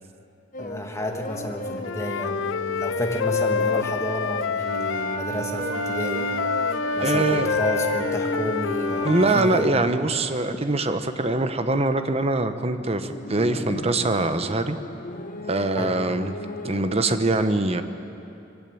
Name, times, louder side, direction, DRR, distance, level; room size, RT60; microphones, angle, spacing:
sound 1, 0.5-5.0 5.3-11.9 12.8-17.2, left 1 dB, 45° left, 1.2 m, -38 dB
voice 1, 0.6-6.3 6.9-9.7 15.8-15.9, left 1 dB, 15° left, 2 dB, 1.9 m, -30 dB
Wind instrument woodwind instrument, 1.8-5.2 5.7-9.5, left 6 dB, 80° left, 0.5 m, -27 dB
Wind instrument woodwind instrument 2, 4.6-9.8, right 3 dB, 70° right, 2.4 m, -31 dB
voice 2, 7.0-7.5 9.0-14.8 15.5-16.3 16.6-17.8, right 2 dB, 30° right, 9 dB, 1.0 m, -23 dB
21.5 x 15.5 x 9.1 m, 2.8 s
head